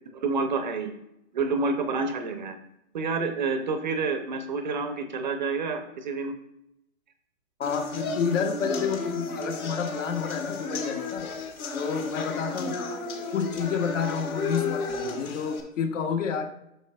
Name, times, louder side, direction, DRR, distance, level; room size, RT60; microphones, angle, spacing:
voice 1, 0.2-0.9 1.3-2.6 2.9-6.3, right 4 dB, 35° right, 7 dB, 0.5 m, -28 dB
sound 1, 7.6-15.6, left 3 dB, 80° left, 1.8 m, -33 dB
voice 2, 7.6-11.3 11.7-12.8 13.3-16.5, left 6 dB, 60° left, 6 dB, 1.1 m, -29 dB
9.6 x 6.7 x 2.2 m, 0.83 s
hypercardioid pair, 160°, 42 cm